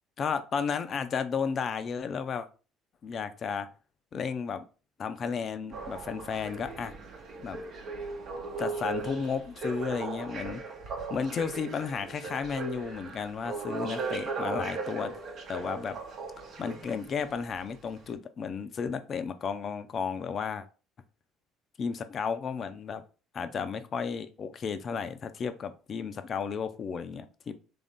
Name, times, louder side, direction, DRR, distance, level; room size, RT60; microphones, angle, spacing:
voice 1, 0.2-2.5 3.0-3.7 4.1-4.6 5.0-6.9 7.4-7.6 8.6-10.6 11.1-15.1 15.5-16.0 16.6-20.6 21.8-23.0 23.3-27.5, left 6 dB, 45° left, 0.4 m, -33 dB
sound 1, 5.7-17.3 18.0-18.1, right 4 dB, 55° right, 0.8 m, -38 dB
3.4 x 2.6 x 3.5 m
hypercardioid pair, 55°, 0 cm